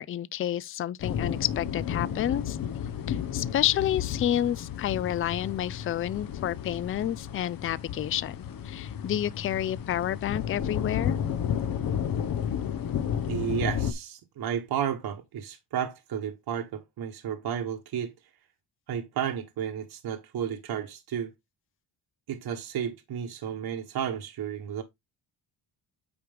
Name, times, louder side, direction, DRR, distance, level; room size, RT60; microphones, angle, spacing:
voice 1, 0.0-2.6 3.1-8.4 8.6-11.2, left 11 dB, 35° left, 0.4 m, -29 dB
sound 1, 1.0-13.9, left 9 dB, 55° left, 1.0 m, -32 dB
voice 2, 13.3-18.1 18.9-21.3 22.3-24.8, right 9 dB, 60° right, 1.2 m, -32 dB
8.9 x 4.8 x 3.4 m
cardioid pair, 155°, 42 cm